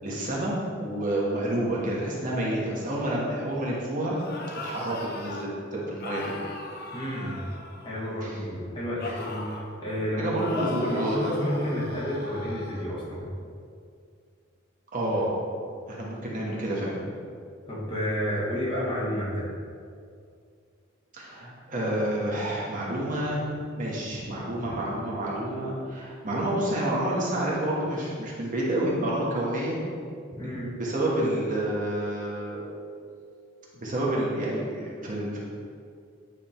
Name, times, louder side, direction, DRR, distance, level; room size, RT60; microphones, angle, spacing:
voice 1, 0.0-4.2 4.6-6.3 8.2-8.4 10.2-11.2 14.9-15.3 15.9-17.0 21.1-23.5 23.8-29.8 30.3-32.6 33.7-35.4, right 1 dB, 40° right, -5 dB, 1.4 m, -29 dB
sound 1, 4.1-5.5 6.0-8.3 9.0-9.7 10.4-12.8, left 2 dB, 50° left, 0.7 m, -39 dB
voice 2, 6.9-7.4 7.8-13.3 17.7-19.5 30.4-30.7, equal, 25° left, -7 dB, 1.8 m, -30 dB
9.4 x 3.7 x 4.4 m, 2.3 s
head